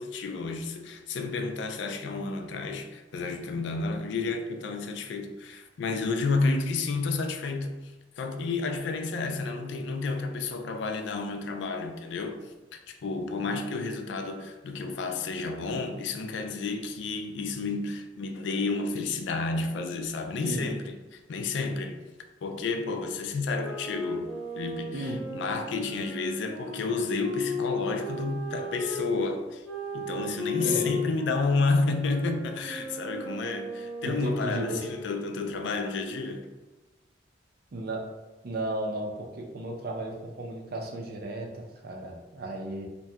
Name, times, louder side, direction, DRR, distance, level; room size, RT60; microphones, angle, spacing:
voice 1, 0.0-7.7 8.2-22.0 22.4-24.3 24.6-29.6 29.9-36.5, left 3 dB, 70° left, 0.3 m, -31 dB
sound 1, 23.4-29.1 29.6-35.2, left 2 dB, 5° right, 1.0 m, -36 dB
voice 2, 30.6-31.0 34.0-34.9 37.7-38.0 38.4-42.9, right 1 dB, 55° right, 0.5 m, -34 dB
2.7 x 2.2 x 3.4 m
head